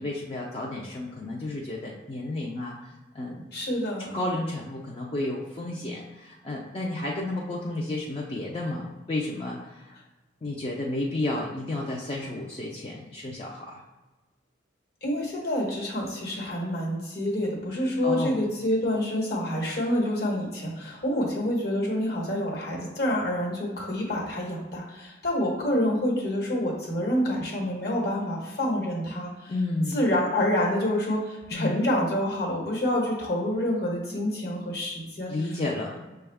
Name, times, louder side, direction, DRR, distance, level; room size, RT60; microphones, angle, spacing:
voice 1, 0.0-3.4 4.1-9.9 10.4-13.8 18.0-18.4 29.5-30.0 31.5-31.8 35.3-36.0, left 2 dB, 25° left, -3 dB, 0.4 m, -32 dB
voice 2, 3.5-4.2 15.0-29.5 29.9-35.5, left 1 dB, 55° left, -1 dB, 1.2 m, -27 dB
6.0 x 2.3 x 3.4 m, 1.2 s
head